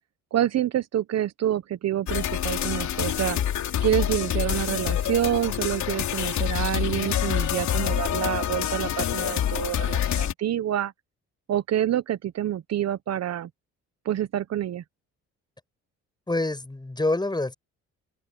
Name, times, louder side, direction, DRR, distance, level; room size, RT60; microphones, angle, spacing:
voice 1, 0.3-3.4 3.8-10.9 11.5-13.5 14.0-14.8, right 11 dB, 60° right, 0.9 m, -27 dB
sound 1, 2.1-10.3, left 10 dB, 70° left, 3.0 m, -27 dB
voice 2, 16.3-17.5, left 2 dB, 15° left, 7.4 m, -26 dB
cardioid pair, 90°, 30 cm